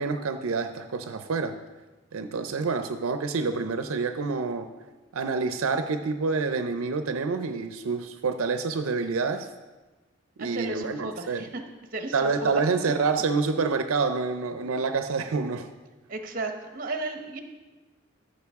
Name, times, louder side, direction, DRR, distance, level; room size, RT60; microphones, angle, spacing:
voice 1, 0.0-1.6 2.1-4.7 5.1-9.5 10.4-11.5 12.1-15.7, right 4 dB, 80° right, 8 dB, 0.5 m, -27 dB
voice 2, 10.4-11.6 11.9-12.5 16.1-17.4, right 2 dB, 40° right, 6 dB, 0.9 m, -34 dB
14.0 x 6.4 x 3.6 m, 1.2 s
head